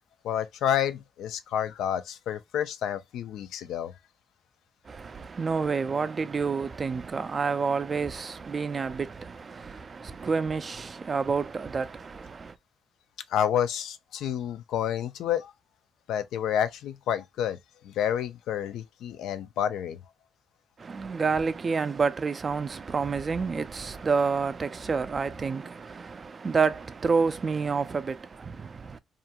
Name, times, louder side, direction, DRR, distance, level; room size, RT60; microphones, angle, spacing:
voice 1, 0.2-3.9 13.3-15.5 16.1-17.6 17.8-20.0, left 9 dB, 80° left, 0.3 m, -29 dB
voice 2, 4.8-12.6 20.8-29.0, right 5 dB, 35° right, 0.3 m, -29 dB
2.4 x 2.2 x 2.7 m
cardioid pair, 90°, 0 cm